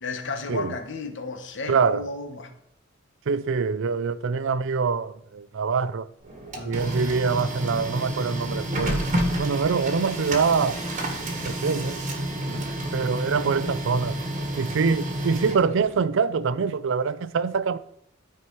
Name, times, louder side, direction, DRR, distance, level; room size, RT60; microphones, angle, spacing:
voice 1, 0.0-2.5 6.6-6.8 12.5-12.7, left 3 dB, 65° left, 1.2 m, -33 dB
voice 2, 1.7-2.1 3.3-6.1 6.6-9.1 9.4-10.8 11.5-12.0 12.9-14.2 14.6-17.8, right 5 dB, 65° right, 0.4 m, -24 dB
Printer, 6.2-16.0, right 1 dB, 40° right, 1.5 m, -30 dB
12.5 x 4.6 x 4.6 m
head